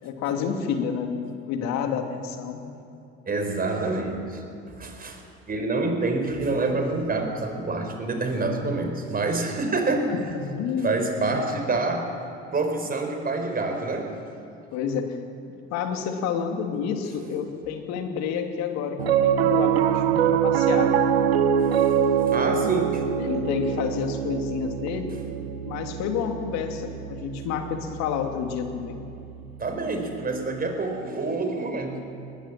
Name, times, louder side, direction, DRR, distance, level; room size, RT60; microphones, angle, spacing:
voice 1, 0.0-2.6 10.1-11.3 14.7-15.2 15.7-20.9 23.2-25.1 25.6-29.1, left 7 dB, 65° left, 5 dB, 2.6 m, -29 dB
voice 2, 3.3-5.2 5.5-10.1 10.8-12.1 12.5-14.2 21.7-21.9 22.3-23.0 29.6-32.0, right 3 dB, 30° right, 5 dB, 4.6 m, -27 dB
Piano, 19.0-29.5, right 9 dB, 85° right, 0.9 m, -24 dB
20.5 x 20.0 x 7.6 m, 2.7 s
hypercardioid pair, 70°, 30 cm